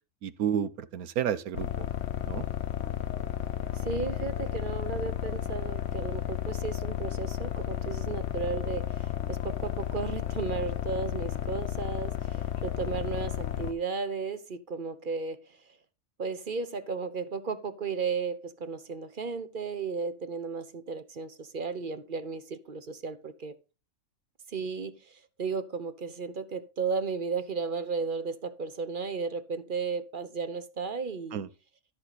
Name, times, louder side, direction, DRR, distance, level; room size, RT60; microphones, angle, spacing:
voice 1, 0.2-1.9 2.3-2.5 31.3-31.5, right 9 dB, 90° right, 1.3 m, -31 dB
sound 1, 1.5-13.7, left 11 dB, 60° left, 1.0 m, -33 dB
voice 2, 3.8-15.4 16.2-23.5 24.5-25.0 25.4-31.4, right 5 dB, 45° right, 0.9 m, -34 dB
13.5 x 6.1 x 4.1 m
omnidirectional pair, 1.5 m